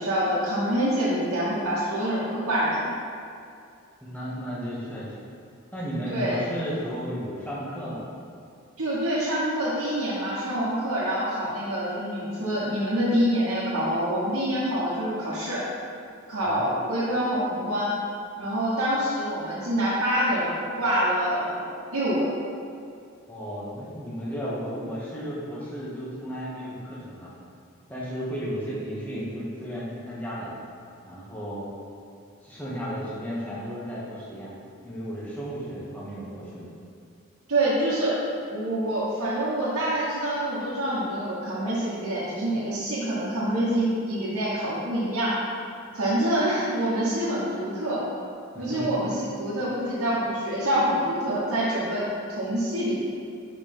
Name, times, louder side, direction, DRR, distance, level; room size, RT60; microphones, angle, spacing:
voice 1, 0.0-2.9 6.1-6.4 8.8-15.6 16.3-17.9 18.4-22.3 37.5-38.2 38.5-45.4 45.9-48.0 48.6-53.0, right 1 dB, 75° right, -11 dB, 1.3 m, -26 dB
voice 2, 4.0-5.1 5.7-8.0 16.4-16.6 23.3-27.3 27.9-30.5 31.0-31.7 32.4-34.5 34.8-36.7 48.5-49.0, equal, 5° left, -8 dB, 1.2 m, -34 dB
5.3 x 4.1 x 5.4 m, 2.4 s
head